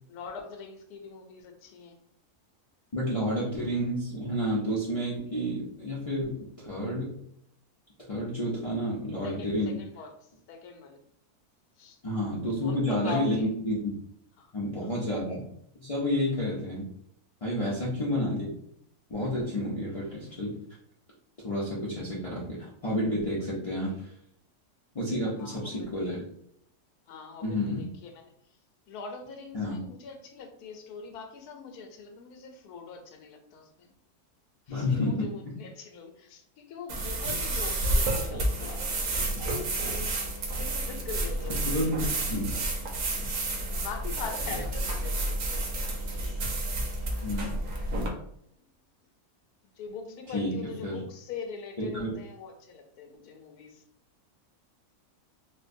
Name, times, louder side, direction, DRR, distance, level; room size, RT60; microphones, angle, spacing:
voice 1, 0.1-2.0 9.2-11.0 11.8-12.0 12.6-13.5 14.4-14.5 17.6-17.9 25.4-26.2 27.1-28.3 28.9-33.9 34.7-40.1 40.6-41.8 42.8-43.2 43.8-45.9 46.6-46.8 49.8-53.8, left 4 dB, 85° left, 5 dB, 1.1 m, -43 dB
voice 2, 2.9-7.2 8.1-9.7 12.0-13.9 14.5-15.4 15.8-16.9 17.4-18.5 19.1-20.5 21.4-24.1 24.9-26.3 27.4-27.8 29.5-29.8 34.7-35.3 41.6-42.5 47.2-47.5 50.3-51.0 51.8-52.1, left 1 dB, 60° left, -7 dB, 0.3 m, -30 dB
sound 1, 36.9-48.1, right 1 dB, 75° right, 1.2 m, -30 dB
4.3 x 2.2 x 2.5 m, 0.71 s
omnidirectional pair, 1.6 m